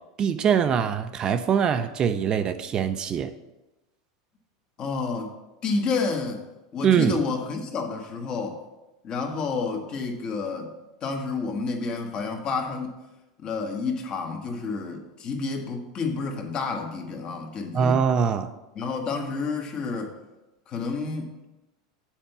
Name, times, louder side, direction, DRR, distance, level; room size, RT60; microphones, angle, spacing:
voice 1, 0.2-3.3 6.8-7.2 17.7-18.5, right 7 dB, 35° right, 9 dB, 0.5 m, -23 dB
voice 2, 4.8-5.3 5.6-6.4 6.7-8.6 9.0-10.7 11.0-12.9 13.4-18.0 18.7-20.1 20.7-21.5, left 4 dB, 40° left, 4 dB, 1.3 m, -30 dB
7.4 x 4.4 x 6.7 m, 1.0 s
hypercardioid pair, 90°, 2 cm